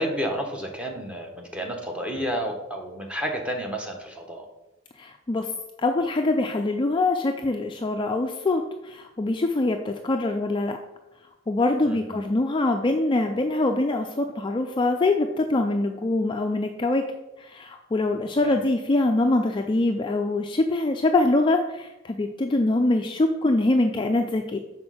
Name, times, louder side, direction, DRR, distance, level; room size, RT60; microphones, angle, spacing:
voice 1, 0.0-4.5 11.8-12.2 18.4-18.6, equal, 5° right, 2 dB, 1.0 m, -31 dB
voice 2, 5.0-5.5 5.8-10.8 11.5-17.0 17.4-24.6, left 2 dB, 25° left, 4 dB, 0.3 m, -24 dB
6.1 x 4.2 x 6.2 m, 0.99 s
head